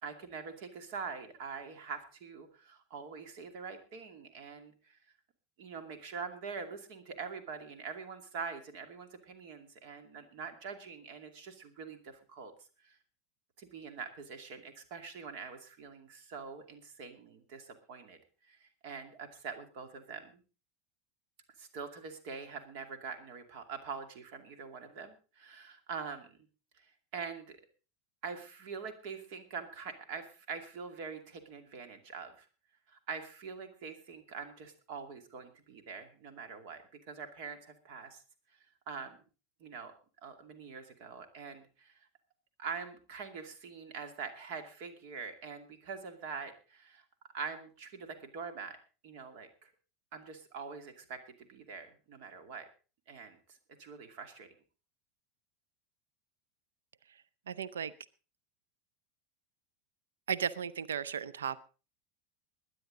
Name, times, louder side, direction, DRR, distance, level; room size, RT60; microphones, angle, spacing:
voice 1, 0.0-5.0 5.6-12.5 12.8-13.0 13.6-20.4 21.6-26.4 26.8-27.6 28.2-32.5 32.9-38.2 38.5-39.2 39.6-39.9 40.2-42.1 42.6-47.0 47.3-48.8 49.0-49.7 50.1-52.7 53.1-54.5, right 5 dB, 60° right, 8 dB, 2.4 m, -44 dB
voice 2, 57.5-57.9 60.3-61.6, right 7 dB, 80° right, 17 dB, 0.6 m, -35 dB
21.5 x 9.4 x 3.9 m, 0.34 s
hypercardioid pair, 85°, 0 cm